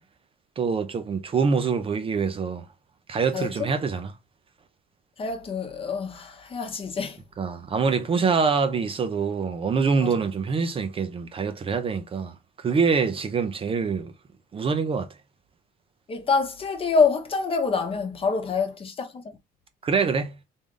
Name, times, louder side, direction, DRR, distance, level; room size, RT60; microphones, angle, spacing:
voice 1, 0.6-2.7 3.1-4.1 7.4-14.1 14.5-15.1 19.8-20.3, right 5 dB, 35° right, 0.6 m, -25 dB
voice 2, 5.2-7.2 10.0-10.1 16.1-19.1, left 4 dB, 35° left, 0.9 m, -26 dB
3.5 x 2.5 x 3.7 m
cardioid pair, 110°, 17 cm